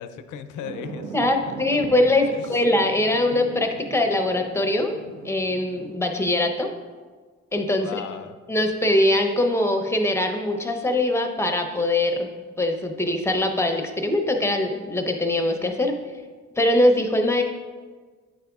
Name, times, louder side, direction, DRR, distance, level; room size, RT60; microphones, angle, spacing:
voice 1, 0.0-1.3 1.7-1.8 2.3-2.6 7.8-8.4, left 8 dB, 80° left, 10 dB, 0.5 m, -37 dB
sound 1, 0.6-6.0, right 4 dB, 60° right, 0.7 m, -40 dB
voice 2, 1.1-5.0 5.2-6.7 7.5-7.9 8.5-12.3 12.6-16.0 16.6-17.4, left 1 dB, 10° left, 4 dB, 0.6 m, -22 dB
8.8 x 4.9 x 2.3 m, 1.5 s
cardioid pair, 90°, 30 cm